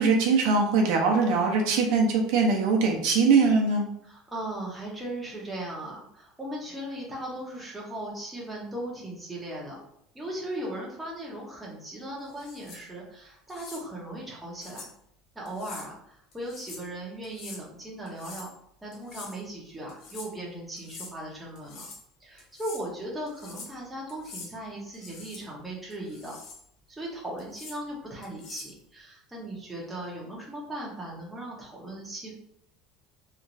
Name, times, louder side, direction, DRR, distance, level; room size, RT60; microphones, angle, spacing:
voice 1, 0.0-3.8, right 4 dB, 60° right, 1 dB, 0.6 m, -22 dB
voice 2, 4.0-9.8 10.1-14.9 15.3-18.5 18.8-21.9 22.2-26.4 26.9-32.3, right 1 dB, 5° right, -4 dB, 0.7 m, -38 dB
sound 1, 12.3-12.8 13.5-13.8 14.6-14.9 15.5-15.9 16.3-16.9 17.2-17.6 18.1-18.5 18.9-19.4 19.9-20.3 20.8-21.1 21.6-22.0 22.4-22.8 23.3-23.8 24.1-24.5 24.9-25.4 25.9-26.6 27.4-27.8 28.2-28.8, left 4 dB, 45° left, 0.7 m, -45 dB
2.9 x 2.4 x 2.5 m, 0.72 s
cardioid pair, 175°, 0 cm